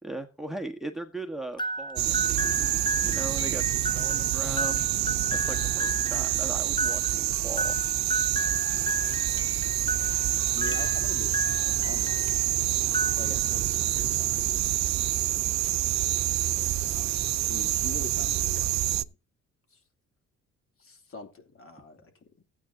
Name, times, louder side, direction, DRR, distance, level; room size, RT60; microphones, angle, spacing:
voice 1, 0.0-4.9 5.3-7.8, right 2 dB, ahead, 1.4 m, -38 dB
sound 1, 1.6-12.5 12.8-13.7, right 1 dB, 15° left, 0.9 m, -34 dB
sound 2, 2.0-19.0, right 14 dB, 65° right, 0.6 m, -27 dB
voice 2, 8.7-12.3 13.0-14.5 14.8-19.1 19.7-19.8 20.8-22.1 22.4-22.5, left 4 dB, 45° left, 3.0 m, -46 dB
15.5 x 9.0 x 2.8 m
cardioid pair, 90°, 30 cm